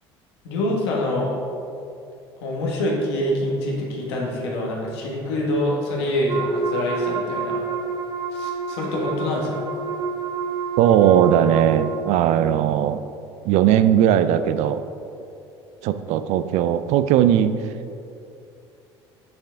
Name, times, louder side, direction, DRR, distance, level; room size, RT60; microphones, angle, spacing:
voice 1, 0.4-1.3 2.4-7.6 8.3-9.6, left 1 dB, 75° left, -2 dB, 1.4 m, -25 dB
Wind instrument woodwind instrument, 6.3-12.0, right 4 dB, 30° right, 1.0 m, -28 dB
voice 2, 10.8-13.0 13.5-14.8 15.8-17.6, right 10 dB, 60° right, 12 dB, 0.4 m, -18 dB
6.6 x 5.8 x 3.8 m, 2.6 s
hypercardioid pair, 65°, 14 cm